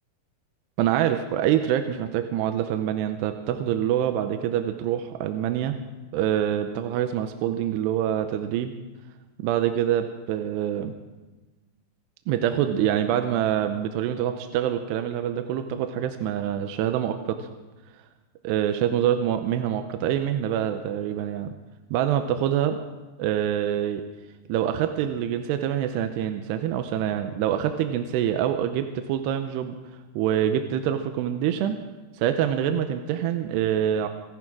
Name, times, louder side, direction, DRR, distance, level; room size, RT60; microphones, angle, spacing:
voice 1, 0.8-5.8 6.1-8.7 9.4-11.0 12.3-17.5 18.4-21.5 21.9-22.8 23.2-24.0 24.5-29.8 30.2-31.8 32.1-34.1, right 10 dB, 80° right, 7 dB, 2.7 m, -25 dB
28.5 x 11.0 x 3.7 m, 1.2 s
omnidirectional pair, 5.2 m